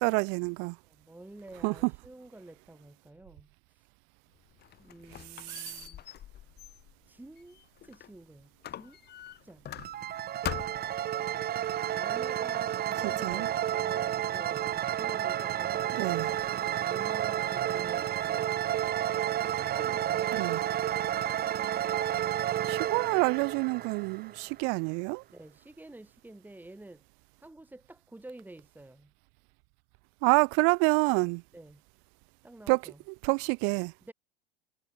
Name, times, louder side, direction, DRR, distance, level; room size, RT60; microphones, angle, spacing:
voice 1, 0.0-0.8 1.6-1.9 5.4-5.9 13.2-13.5 15.9-16.3 20.3-20.6 22.7-25.2 30.2-31.4 32.7-32.8 33.2-33.9, right 39 dB, 50° right, 0.5 m, -27 dB
voice 2, 0.9-3.5 4.8-6.0 7.1-9.0 9.4-9.7 11.9-16.5 16.8-18.6 19.4-20.3 25.3-27.0 27.4-29.1 31.5-31.8 32.4-33.0 34.1-34.2, right 2 dB, 5° right, 6.0 m, -50 dB
Squeak, 4.4-8.2 8.6-10.1 10.4-11.0, left 11 dB, 35° left, 1.7 m, -42 dB
sound 1, 9.8-24.6, right 11 dB, 30° right, 1.1 m, -31 dB
hypercardioid pair, 90°, 30 cm